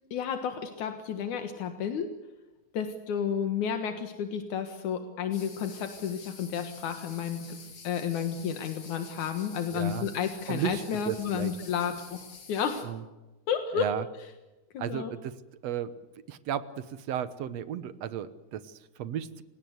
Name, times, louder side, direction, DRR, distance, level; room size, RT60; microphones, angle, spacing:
voice 1, 0.1-2.1 2.7-12.2 12.5-12.9 13.5-13.9 14.7-15.1, left 7 dB, 85° left, 7 dB, 3.0 m, -31 dB
sound 1, 5.3-12.9, left 5 dB, 65° left, 4.6 m, -49 dB
voice 2, 9.7-10.1 10.5-11.5 12.8-13.0 13.7-14.0 14.8-15.3 15.6-15.9 16.3-19.4, right 9 dB, 65° right, 14 dB, 2.1 m, -34 dB
29.0 x 17.5 x 8.0 m, 1.1 s
omnidirectional pair, 3.3 m